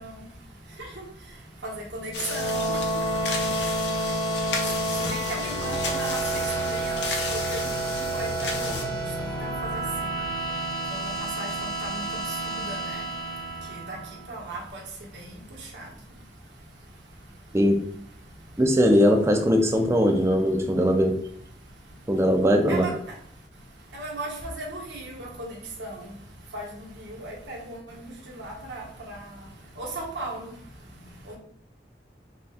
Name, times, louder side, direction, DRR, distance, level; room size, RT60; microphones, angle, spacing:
voice 1, 0.0-18.6 20.4-31.4, right 2 dB, 85° right, -2 dB, 1.1 m, -39 dB
sound 1, 2.0-14.4, right 2 dB, 25° left, 0.9 m, -30 dB
sound 2, 2.1-8.8, left 4 dB, 85° left, 0.7 m, -34 dB
voice 2, 18.6-21.2 22.1-22.8, equal, 15° right, 4 dB, 0.4 m, -20 dB
4.2 x 2.3 x 3.4 m, 0.66 s
head